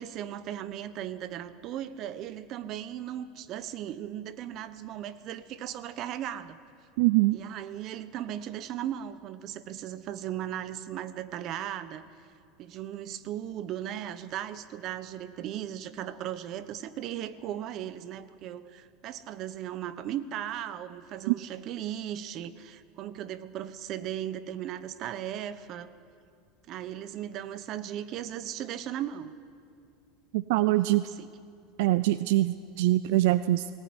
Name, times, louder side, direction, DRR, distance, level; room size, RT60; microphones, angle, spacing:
voice 1, 0.0-6.6 7.3-12.0 12.6-25.9 26.7-29.3 30.7-31.3, right 11 dB, 40° right, 13 dB, 1.1 m, -37 dB
voice 2, 7.0-7.4 21.3-21.4 30.3-31.0 31.8-33.7, right 17 dB, 65° right, 14 dB, 0.5 m, -23 dB
19.0 x 19.0 x 9.7 m, 2.3 s
supercardioid pair, 160°, 0 cm